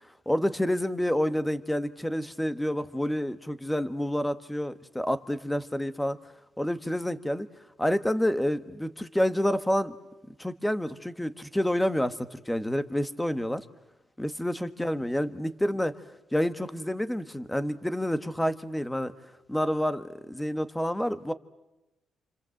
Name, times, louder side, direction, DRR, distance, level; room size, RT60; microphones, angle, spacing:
voice 1, 0.2-6.2 6.6-7.5 7.8-9.9 10.4-13.6 14.2-15.9 16.3-19.1 19.5-21.3, equal, 5° left, 11 dB, 1.4 m, -28 dB
28.5 x 26.0 x 7.8 m, 1.0 s
cardioid pair, 90°, 0 cm